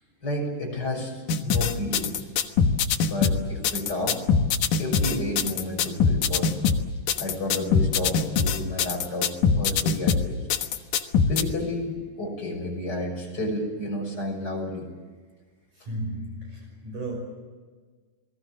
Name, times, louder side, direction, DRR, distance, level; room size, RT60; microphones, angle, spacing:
voice 1, 0.2-2.2 3.0-4.2 4.8-6.7 7.2-10.4 11.3-14.9, left 1 dB, 25° left, 1 dB, 6.6 m, -31 dB
sound 1, 1.3-11.4, left 6 dB, 60° left, 2.5 m, -23 dB
voice 2, 15.7-17.2, right 1 dB, 50° right, 1 dB, 7.1 m, -34 dB
30.0 x 20.0 x 7.5 m, 1.5 s
omnidirectional pair, 4.7 m